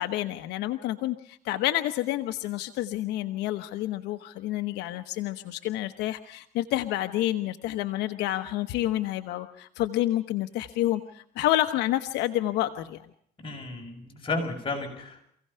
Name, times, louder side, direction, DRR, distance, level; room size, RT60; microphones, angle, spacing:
voice 1, 0.0-13.0, left 14 dB, 85° left, 8 dB, 1.1 m, -29 dB
voice 2, 13.4-15.2, left 3 dB, 30° left, 1 dB, 7.1 m, -33 dB
27.0 x 17.0 x 5.7 m, 0.68 s
cardioid pair, 110°, 17 cm